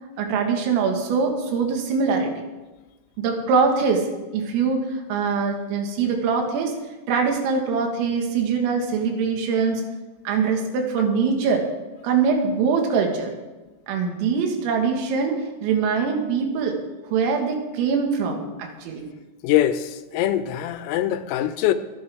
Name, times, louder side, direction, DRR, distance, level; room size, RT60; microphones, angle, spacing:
voice 1, 0.2-2.3 3.2-6.7 7.1-9.8 10.3-11.7 12.0-13.3 13.9-16.8 17.1-19.1, right 5 dB, 80° right, 4.3 m, -23 dB
voice 2, 19.4-21.7, left 12 dB, 85° left, 3.3 m, -23 dB
24.0 x 9.6 x 3.6 m
omnidirectional pair, 5.9 m